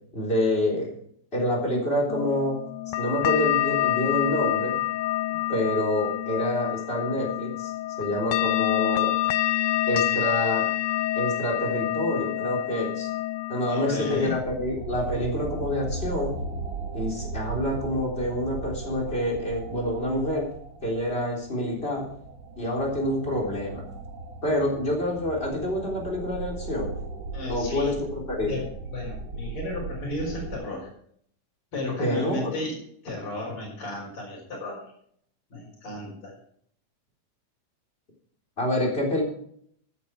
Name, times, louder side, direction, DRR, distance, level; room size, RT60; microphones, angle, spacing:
voice 1, 0.1-0.9 1.3-2.6 3.0-4.8 5.5-7.7 8.0-9.1 9.9-10.7 11.2-13.1 13.5-16.4 16.9-20.5 20.8-22.2 22.6-23.8 24.4-26.9 27.5-28.6 32.0-32.5 38.6-39.2, left 1 dB, 20° left, -2 dB, 3.7 m, -27 dB
sound 1, 2.1-14.4, left 15 dB, 85° left, 1.2 m, -27 dB
voice 2, 13.7-14.4 27.3-28.0 28.4-30.9 31.7-32.8 33.0-34.8 35.5-36.3, left 2 dB, 45° left, -5 dB, 5.4 m, -34 dB
sound 2, 13.9-30.5, right 4 dB, 85° right, 3.6 m, -37 dB
14.0 x 10.0 x 4.7 m, 0.65 s
omnidirectional pair, 3.3 m